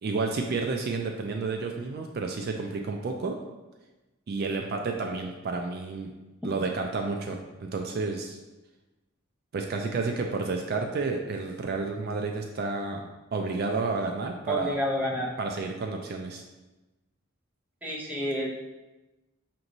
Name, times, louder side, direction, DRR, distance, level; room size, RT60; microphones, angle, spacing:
voice 1, 0.0-3.4 4.3-6.1 6.4-8.4 9.5-13.0 13.3-14.8 15.4-16.4, right 3 dB, 50° right, 3 dB, 0.3 m, -31 dB
voice 2, 14.5-15.3 17.8-18.5, equal, 10° right, -3 dB, 0.6 m, -29 dB
6.1 x 3.0 x 2.6 m, 1.1 s
head